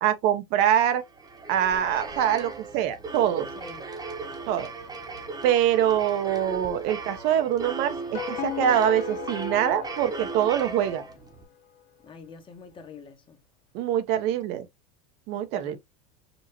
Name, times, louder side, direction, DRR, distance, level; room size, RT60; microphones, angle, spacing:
voice 1, 0.0-1.0 1.5-3.5 4.5-4.7 5.4-11.0 13.7-14.7 15.3-15.8, right 10 dB, 55° right, 0.9 m, -24 dB
sound 1, 1.0-11.4, right 3 dB, 20° right, 1.1 m, -37 dB
sound 2, 7.9-11.1, left 9 dB, 40° left, 0.7 m, -36 dB
voice 2, 12.0-13.4 15.5-15.8, left 4 dB, 25° left, 1.2 m, -45 dB
5.3 x 2.8 x 2.8 m
supercardioid pair, 115°, 20 cm